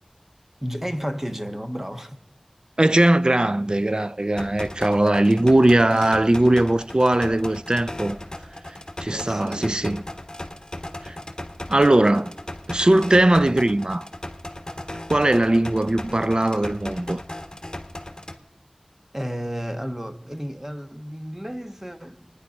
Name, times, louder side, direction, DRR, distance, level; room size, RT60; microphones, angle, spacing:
voice 1, 0.6-2.2 9.1-9.7 19.1-22.3, equal, 15° right, 1.1 m, -32 dB
voice 2, 2.8-8.2 8.7-10.0 11.1-11.2 11.7-12.3 12.7-14.1 15.1-17.2, right 1 dB, 45° right, 0.5 m, -19 dB
sound 1, 4.4-18.4, left 1 dB, 35° left, 1.4 m, -37 dB
25.5 x 10.0 x 5.3 m
wide cardioid pair, 40°, 2 cm